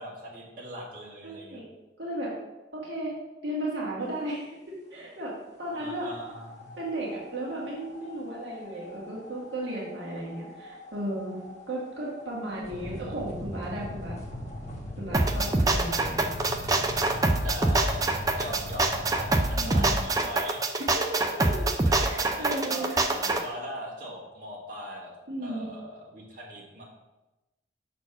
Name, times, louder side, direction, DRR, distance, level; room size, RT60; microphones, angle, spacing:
voice 1, 0.0-1.6 5.7-6.7 17.4-20.7 21.2-25.1 25.4-26.8, right 1 dB, 50° right, -5 dB, 2.1 m, -41 dB
voice 2, 1.2-1.6 2.0-2.3 2.7-3.1 3.4-5.3 5.6-6.1 6.8-11.4 11.7-14.2 15.0-16.3 19.6-19.9 20.9-21.0 22.1-23.0 25.3-25.7, right 1 dB, 75° right, -5 dB, 1.7 m, -34 dB
sound 1, 5.6-20.0, left 1 dB, 40° left, 1.3 m, -40 dB
sound 2, 15.1-23.4, right 2 dB, 20° right, 0.5 m, -25 dB
6.2 x 4.2 x 5.9 m, 1.0 s
head